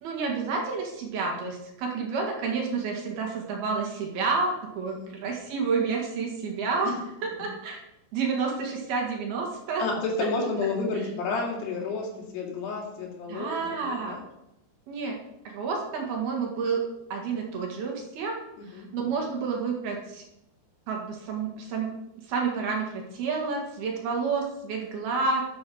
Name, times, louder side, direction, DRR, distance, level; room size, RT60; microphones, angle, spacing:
voice 1, 0.0-6.9 7.2-7.8 8.1-9.9 13.3-14.2 14.9-15.2 15.5-16.8 17.1-18.4 18.7-20.2 20.9-21.9 22.3-25.4, right 4 dB, 65° right, 0 dB, 3.6 m, -29 dB
voice 2, 9.8-14.2 18.6-18.9, left 3 dB, 70° left, -1 dB, 4.4 m, -31 dB
10.0 x 8.7 x 6.3 m, 0.87 s
omnidirectional pair, 5.1 m